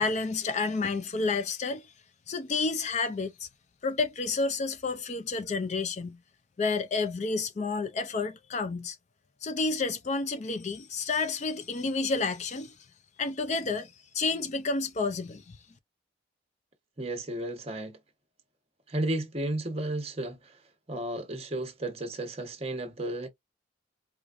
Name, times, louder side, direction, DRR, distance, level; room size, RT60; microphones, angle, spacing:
voice 1, 0.0-1.9 2.3-3.5 3.8-6.2 6.6-9.0 9.4-12.7 13.2-15.6, left 4 dB, 40° left, 0.4 m, -30 dB
voice 2, 17.0-18.0 18.9-20.6 20.9-23.3, right 1 dB, 35° right, 1.0 m, -33 dB
4.7 x 2.5 x 2.5 m
head